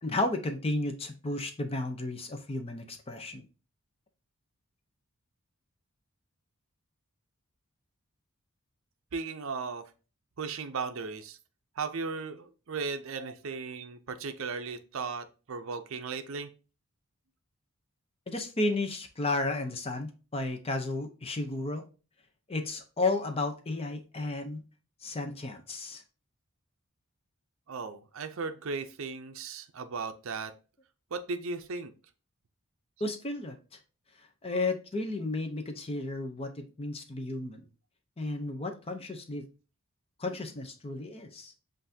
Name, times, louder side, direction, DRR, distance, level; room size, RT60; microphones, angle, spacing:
voice 1, 0.0-3.4 18.3-21.8 22.5-24.6 25.0-26.0 33.0-33.6 34.4-37.7 38.2-39.4 40.2-41.5, left 2 dB, 25° left, 6 dB, 0.6 m, -33 dB
voice 2, 9.1-9.9 10.4-11.4 11.8-16.5 27.7-30.5 31.1-31.9, right 4 dB, 60° right, 9 dB, 0.5 m, -36 dB
7.7 x 2.6 x 2.7 m, 0.34 s
head